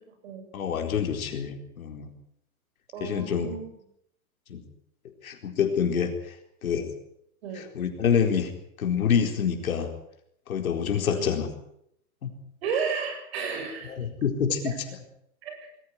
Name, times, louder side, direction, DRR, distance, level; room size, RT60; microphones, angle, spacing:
voice 1, 0.5-2.1 3.0-3.5 4.5-4.6 5.2-6.3 6.6-6.9 7.5-8.5 8.8-9.9 10.5-11.5 12.2-12.3 13.9-14.7, left 7 dB, 70° left, 4 dB, 4.4 m, -27 dB
voice 2, 2.9-3.7 7.4-7.6 11.1-11.3 12.6-14.0 14.6-14.7 15.4-15.7, right 6 dB, 45° right, 6 dB, 7.5 m, -32 dB
21.5 x 15.0 x 9.9 m, 0.73 s
hypercardioid pair, 170°, 43 cm